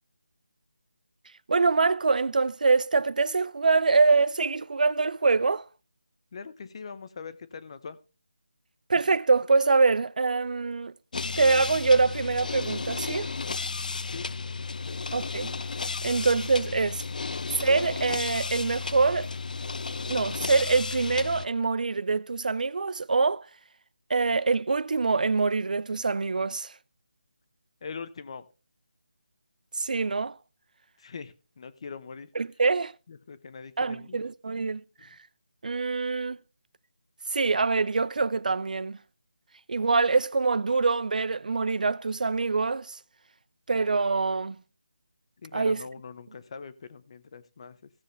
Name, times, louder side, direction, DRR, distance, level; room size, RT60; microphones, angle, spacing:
voice 1, 1.5-5.7 8.9-10.9 11.2-13.3 15.1-15.5 16.0-17.0 17.6-19.3 20.1-23.5 24.1-26.7 29.8-30.4 32.4-32.9 33.8-34.8 35.6-36.4 37.3-39.0 39.7-43.0 43.7-44.6 45.5-45.8, right 4 dB, 65° right, 0.4 m, -24 dB
voice 2, 6.3-8.0 14.1-14.3 14.9-15.1 27.8-28.5 31.0-32.3 33.1-34.2 35.0-35.1 45.4-47.9, left 5 dB, 40° left, 0.8 m, -42 dB
sound 1, 11.1-21.5, left 4 dB, 65° left, 0.4 m, -33 dB
16.0 x 7.5 x 3.3 m
figure-of-eight pair, 165°, 5 cm